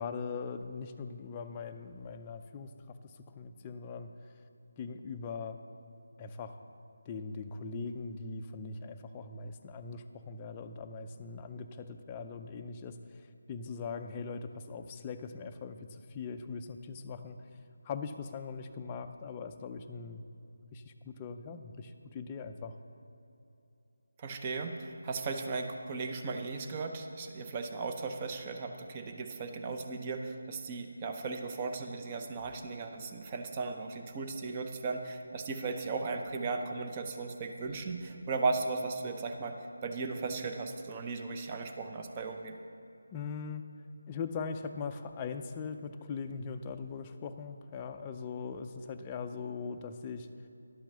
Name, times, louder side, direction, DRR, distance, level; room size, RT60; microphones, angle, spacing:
voice 1, 0.0-4.1 4.8-5.6 6.2-6.6 7.1-17.4 17.8-20.2 20.7-22.7 43.1-43.8 44.1-50.3, left 5 dB, 20° left, 6 dB, 0.4 m, -41 dB
voice 2, 24.2-39.6 39.8-42.6, right 4 dB, 25° right, 4 dB, 0.7 m, -36 dB
11.5 x 5.9 x 6.7 m, 2.8 s
figure-of-eight pair, 165°, 0 cm